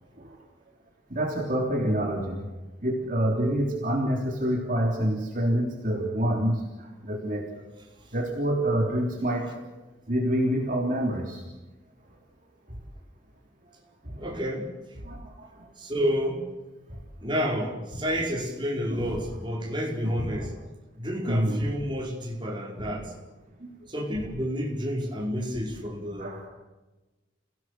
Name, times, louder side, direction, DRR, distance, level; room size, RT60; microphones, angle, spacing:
voice 1, 1.1-2.5 2.8-7.7 8.1-9.5 10.1-11.4 14.0-14.2 15.0-15.7 18.9-19.3 20.0-20.5 21.3-21.7 22.8-23.0 23.6-23.7 26.2-26.5, right 1 dB, 45° right, 0 dB, 3.5 m, -27 dB
voice 2, 14.2-14.7 15.8-16.4 17.2-20.5 21.0-23.1 23.9-26.4, equal, 25° right, 0 dB, 5.1 m, -30 dB
29.5 x 17.5 x 7.9 m, 1.1 s
head